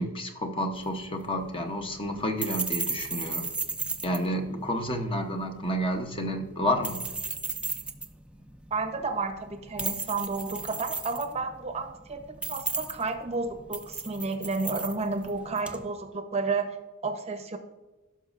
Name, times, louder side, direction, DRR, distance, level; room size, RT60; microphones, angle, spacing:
voice 1, 0.0-3.5 4.0-7.0, equal, 25° left, 4 dB, 0.8 m, -30 dB
sound 1, 0.7-15.8, right 3 dB, 5° right, 0.4 m, -36 dB
voice 2, 8.7-12.2 12.5-16.8 17.0-17.6, right 3 dB, 30° right, 7 dB, 0.8 m, -31 dB
15.0 x 6.2 x 2.5 m, 1.2 s
head